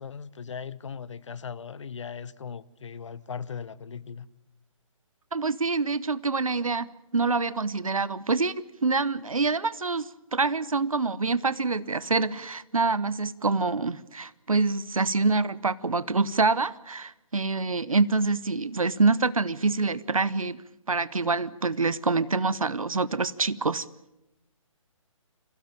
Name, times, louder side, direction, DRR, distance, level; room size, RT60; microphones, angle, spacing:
voice 1, 0.0-4.3, left 6 dB, 60° left, 1.0 m, -38 dB
voice 2, 5.3-20.6 20.9-23.9, right 3 dB, 85° right, 0.9 m, -26 dB
27.0 x 16.0 x 8.9 m
figure-of-eight pair, 140°, 17 cm